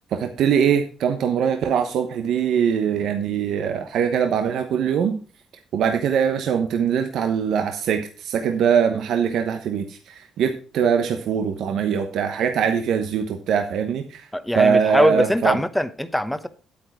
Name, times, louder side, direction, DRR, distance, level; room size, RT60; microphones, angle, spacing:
voice 1, 0.1-5.2 5.7-14.3 14.5-15.6, right 7 dB, 75° right, 1.0 m, -22 dB
voice 2, 14.3-16.5, equal, 5° left, 0.9 m, -22 dB
8.7 x 8.5 x 4.6 m
cardioid pair, 90°, 0 cm